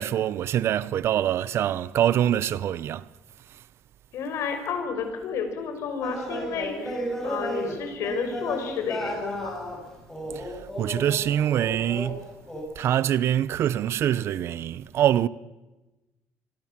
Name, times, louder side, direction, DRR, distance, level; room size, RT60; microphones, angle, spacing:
voice 1, 0.0-3.1 10.3-12.2 12.8-15.3, right 11 dB, 55° right, 0.7 m, -25 dB
voice 2, 4.1-9.6, left 6 dB, 65° left, 5.6 m, -31 dB
sound 1, 6.0-12.2 12.5-12.6, equal, 5° left, 7.9 m, -33 dB
26.5 x 23.0 x 7.5 m
cardioid pair, 155°, 5 cm